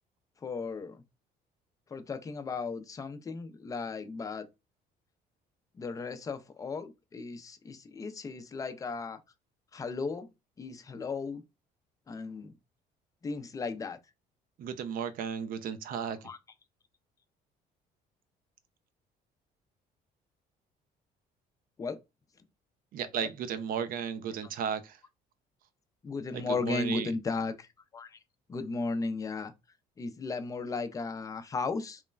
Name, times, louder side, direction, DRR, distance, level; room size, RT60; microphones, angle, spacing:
voice 1, 0.4-1.0 1.9-4.5 5.8-9.2 9.7-10.3 10.6-11.4 12.1-12.5 13.2-14.0 16.2-16.4 21.8-22.0 23.2-23.3 26.0-28.2 28.5-29.5 30.0-32.0, left 4 dB, 20° left, 0.3 m, -35 dB
voice 2, 14.6-16.3 22.9-25.0 26.3-27.1, right 7 dB, 60° right, 0.4 m, -34 dB
3.0 x 2.1 x 2.2 m
cardioid pair, 110°, 17 cm